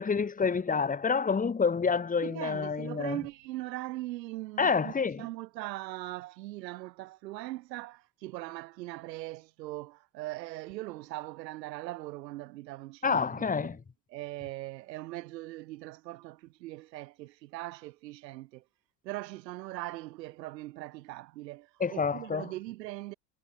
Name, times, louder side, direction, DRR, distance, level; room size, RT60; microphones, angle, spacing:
voice 1, 0.0-3.2 4.6-5.2 13.0-13.8 21.8-22.5, left 5 dB, 15° left, 0.9 m, -28 dB
voice 2, 2.2-13.7 14.1-18.6 19.0-23.1, right 18 dB, 85° right, 2.4 m, -40 dB
hypercardioid pair, 75°, 49 cm